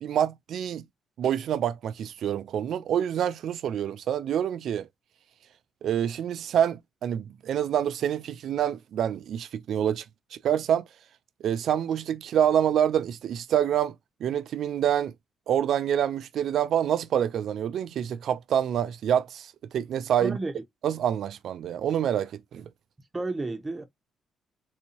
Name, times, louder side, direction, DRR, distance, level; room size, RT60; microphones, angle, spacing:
voice 1, 0.0-0.8 1.2-4.9 5.8-10.0 10.3-10.8 11.4-13.9 14.2-15.1 15.5-20.4 20.8-22.7, right 9 dB, 70° right, 0.4 m, -26 dB
voice 2, 20.2-20.6 23.1-23.8, right 2 dB, 20° right, 0.9 m, -32 dB
4.0 x 2.7 x 2.8 m
cardioid pair, 90°, 0 cm